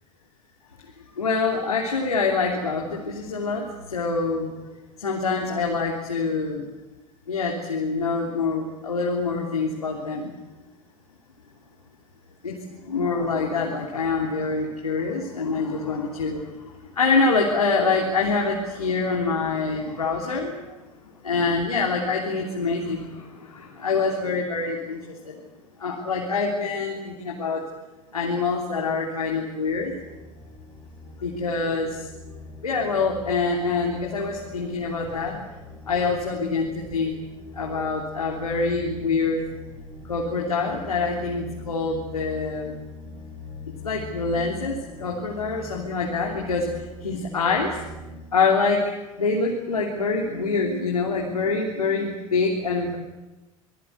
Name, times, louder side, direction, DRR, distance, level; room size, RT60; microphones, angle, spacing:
voice 1, 1.2-4.5 5.0-6.6 7.3-10.3 12.4-12.6 12.9-16.4 17.0-20.6 21.2-25.3 25.8-27.6 28.1-29.9 31.2-31.9 32.6-35.4 35.9-37.1 37.5-39.4 40.1-42.8 43.8-46.6 47.0-47.8 48.3-48.8 49.2-53.0, left 4 dB, 90° left, -1 dB, 3.3 m, -25 dB
sound 1, 29.7-48.2, left 2 dB, 80° right, 7.9 m, -42 dB
27.0 x 20.0 x 8.1 m, 1.1 s
hypercardioid pair, 75°, 18 cm